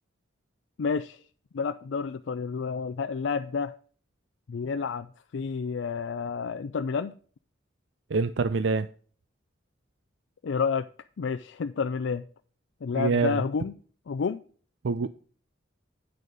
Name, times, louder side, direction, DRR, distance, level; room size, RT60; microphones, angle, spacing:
voice 1, 0.8-1.2 1.5-3.7 4.5-5.1 5.3-7.1 10.4-10.9 11.2-12.2 12.8-13.7 14.1-14.4, left 5 dB, 75° left, 0.4 m, -30 dB
voice 2, 8.1-8.9 12.9-13.4 14.8-15.1, right 4 dB, 70° right, 0.4 m, -25 dB
8.9 x 6.6 x 5.1 m
head